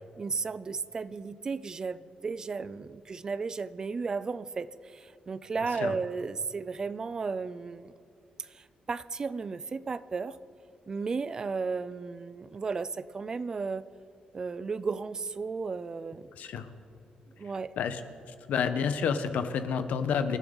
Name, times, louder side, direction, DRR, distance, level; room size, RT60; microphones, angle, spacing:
voice 1, 0.2-7.9 8.4-10.4 10.9-13.9 14.3-16.3 17.3-17.7, right 4 dB, 25° right, 15 dB, 0.4 m, -34 dB
voice 2, 16.4-16.7 17.8-18.0 18.5-20.4, left 6 dB, 85° left, 9 dB, 1.1 m, -29 dB
26.5 x 12.5 x 4.0 m, 2.7 s
wide cardioid pair, 175°, 3 cm